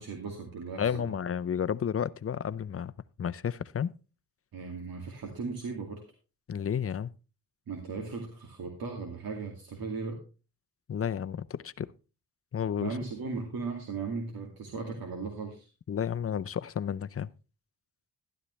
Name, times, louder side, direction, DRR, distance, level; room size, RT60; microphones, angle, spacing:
voice 1, 0.0-1.1 4.5-6.0 7.7-10.2 12.8-15.7, right 4 dB, 80° right, 2.4 m, -37 dB
voice 2, 0.8-2.9 3.2-3.9 6.5-7.1 10.9-11.9 12.5-13.0 15.9-17.3, left 8 dB, 40° left, 0.6 m, -31 dB
12.5 x 12.0 x 3.2 m
cardioid pair, 80°, 35 cm